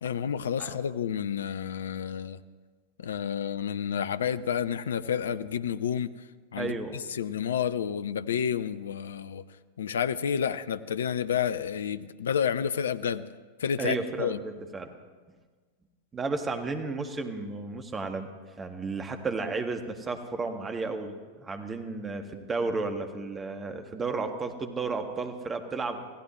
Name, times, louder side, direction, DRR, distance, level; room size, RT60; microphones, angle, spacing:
voice 1, 0.0-2.4 3.0-6.1 6.5-6.7 7.1-9.4 9.8-13.2 13.6-14.4, left 8 dB, 65° left, 15 dB, 0.5 m, -30 dB
voice 2, 6.5-7.0 13.8-14.9 16.1-18.3 18.6-21.1 21.4-26.0, right 3 dB, 20° right, 5 dB, 1.6 m, -33 dB
26.5 x 16.5 x 3.2 m, 1.4 s
figure-of-eight pair, 90°, 0 cm